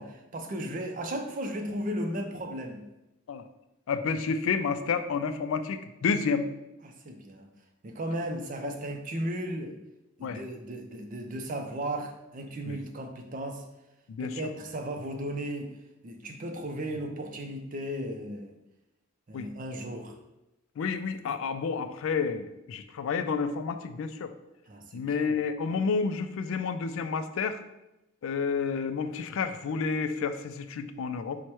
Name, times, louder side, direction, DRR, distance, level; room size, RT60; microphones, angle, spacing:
voice 1, 0.0-2.8 6.8-7.5 7.8-9.8 10.2-13.6 14.2-15.7 16.0-18.5 19.3-20.2 24.7-25.4, right 1 dB, 40° right, 4 dB, 0.4 m, -35 dB
voice 2, 3.9-6.5 8.6-8.8 10.2-10.4 12.7-12.8 14.1-14.4 19.3-19.5 20.8-24.3 24.9-27.6 28.2-31.4, left 5 dB, 70° left, 10 dB, 0.3 m, -30 dB
4.6 x 2.1 x 4.4 m, 0.95 s
head